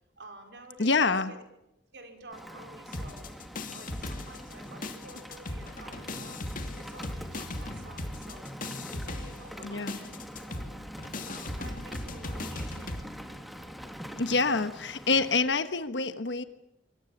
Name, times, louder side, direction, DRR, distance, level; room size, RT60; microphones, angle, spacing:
voice 1, 0.2-1.0 1.3-1.4 1.9-3.3 3.7-6.4 6.8-8.5 8.9-10.8 11.2-13.1, right 2 dB, 70° right, 5 dB, 4.9 m, -50 dB
voice 2, 0.8-1.3 9.6-10.0 14.2-16.4, left 4 dB, 75° left, 10 dB, 1.2 m, -26 dB
Rain, 2.3-15.4, equal, ahead, 2.3 m, -44 dB
sound 1, 2.9-4.6 4.8-13.0, left 2 dB, 50° left, 2.5 m, -38 dB
25.0 x 24.5 x 7.3 m, 0.86 s
head